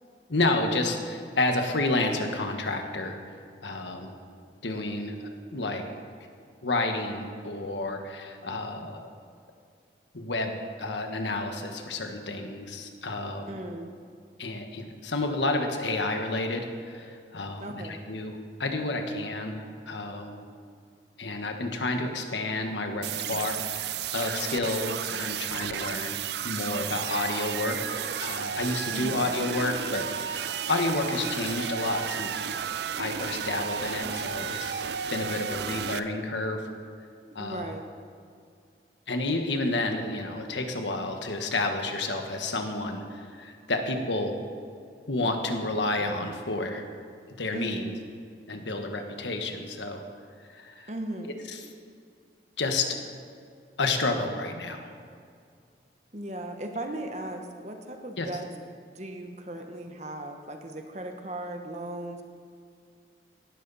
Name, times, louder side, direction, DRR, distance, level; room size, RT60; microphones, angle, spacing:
voice 1, 0.3-4.1 4.6-5.2 5.5-5.8 6.6-9.1 10.1-10.5 10.8-13.6 14.4-20.4 21.2-26.2 26.4-32.3 33.0-36.7 37.3-37.7 39.1-44.3 45.1-46.9 47.4-47.8 48.5-50.0 50.5-50.9 51.5-51.7 52.6-53.0 53.8-54.9 58.2-58.4, left 2 dB, 90° left, 5 dB, 1.5 m, -30 dB
voice 2, 13.5-13.9 17.6-18.0 28.9-29.4 37.3-37.8 47.5-48.0 50.9-51.4 56.1-58.5 58.9-62.2, right 1 dB, 40° right, 4 dB, 1.2 m, -37 dB
sound 1, 23.0-36.0, right 8 dB, 70° right, 0.5 m, -33 dB
17.5 x 12.5 x 4.2 m, 2.3 s
head